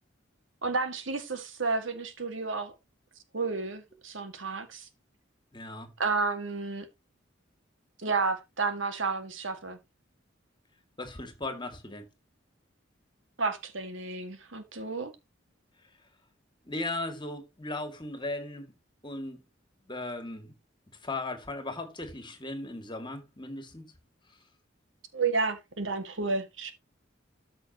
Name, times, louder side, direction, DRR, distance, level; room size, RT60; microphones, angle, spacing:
voice 1, 0.6-2.7 3.3-4.9 6.0-6.9 8.0-9.8 13.4-15.1 25.1-26.7, right 4 dB, 75° right, 2.1 m, -31 dB
voice 2, 5.5-5.9 11.0-12.1 16.6-18.7 19.0-19.4 19.9-20.5 21.0-23.9, left 2 dB, 25° left, 2.4 m, -37 dB
13.5 x 6.2 x 3.0 m
head